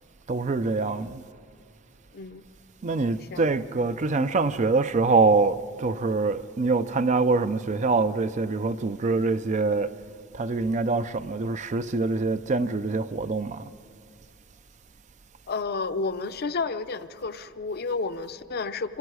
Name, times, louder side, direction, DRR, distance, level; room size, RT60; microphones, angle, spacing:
voice 1, 0.3-1.2 2.8-10.0 10.3-13.7, right 3 dB, 35° right, 0.5 m, -24 dB
voice 2, 2.1-2.5 3.2-3.5 15.5-19.0, left 4 dB, 50° left, 0.6 m, -31 dB
26.5 x 24.5 x 4.8 m
head